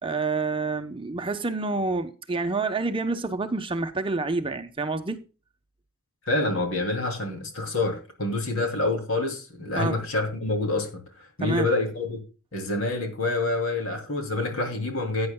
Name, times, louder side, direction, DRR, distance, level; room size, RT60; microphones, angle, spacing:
voice 1, 0.0-5.2 9.7-10.0 11.4-11.7, right 3 dB, 25° right, 0.7 m, -28 dB
voice 2, 6.2-12.2 12.5-15.3, left 2 dB, 60° left, 2.8 m, -27 dB
16.0 x 9.6 x 2.2 m
head